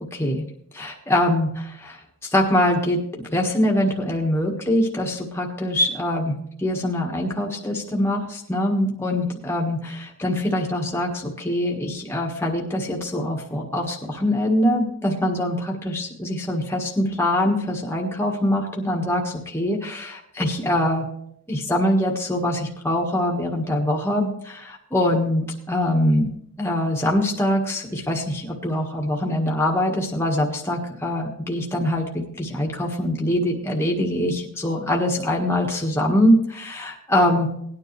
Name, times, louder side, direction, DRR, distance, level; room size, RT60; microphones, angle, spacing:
voice 1, 0.1-0.4 0.7-21.0 21.5-26.3 26.6-37.5, left 1 dB, 10° left, -1 dB, 1.5 m, -23 dB
18.5 x 9.7 x 3.3 m, 0.71 s
head